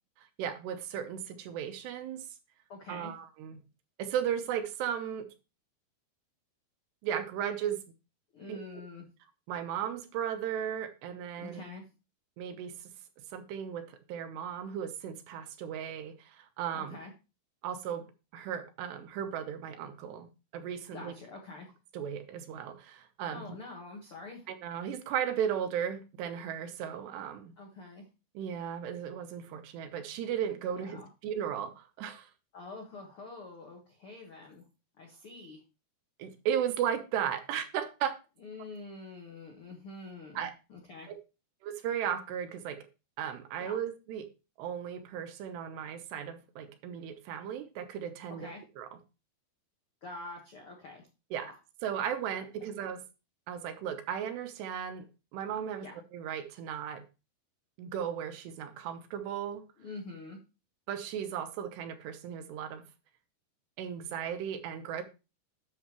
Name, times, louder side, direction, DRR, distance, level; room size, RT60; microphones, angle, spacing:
voice 1, 0.4-2.2 2.9-3.6 4.0-5.3 7.0-7.8 8.5-8.6 9.5-11.6 12.4-12.7 13.3-17.0 17.6-18.1 18.3-20.3 20.5-21.1 21.9-23.6 24.5-27.5 28.4-32.3 36.2-38.1 40.4-40.5 41.1-41.2 41.6-42.9 43.2-44.3 44.6-48.5 48.8-48.9 51.3-51.5 51.8-53.0 53.5-55.1 55.3-55.9 56.1-57.0 57.8-59.6 60.9-62.8 63.8-65.0, right 9 dB, 80° right, 3.0 m, -35 dB
voice 2, 2.7-3.1 8.3-9.1 11.4-11.8 16.7-17.1 20.9-21.7 23.3-24.5 27.6-28.0 30.7-31.1 32.5-34.6 35.0-35.6 38.4-41.1 43.6-43.8 48.3-48.6 50.0-51.1 51.3-51.6 52.4-52.5 55.8-55.9 59.8-60.4, left 3 dB, 65° left, 1.3 m, -46 dB
9.9 x 7.2 x 3.0 m
omnidirectional pair, 5.0 m